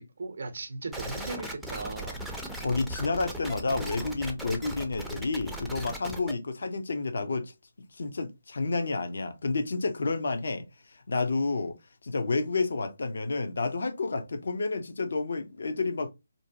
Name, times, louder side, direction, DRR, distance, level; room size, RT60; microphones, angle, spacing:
voice 1, 0.0-2.2, right 3 dB, 60° right, 0.5 m, -37 dB
sound 1, 0.9-6.3, right 1 dB, ahead, 0.4 m, -38 dB
voice 2, 2.6-7.5 7.9-11.8 12.0-16.1, left 3 dB, 65° left, 0.5 m, -30 dB
2.6 x 2.1 x 2.5 m
figure-of-eight pair, 155°, 0 cm